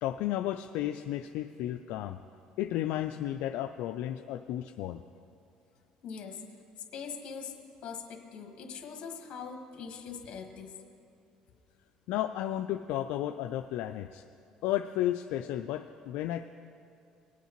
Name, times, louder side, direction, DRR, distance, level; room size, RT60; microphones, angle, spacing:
voice 1, 0.0-2.2 2.6-5.0 12.1-14.2 14.6-16.5, left 13 dB, 75° left, 6 dB, 0.3 m, -33 dB
voice 2, 6.0-6.4 6.9-10.7, left 6 dB, 55° left, 3 dB, 1.4 m, -42 dB
19.5 x 8.3 x 3.0 m, 2.6 s
supercardioid pair, 100°, 2 cm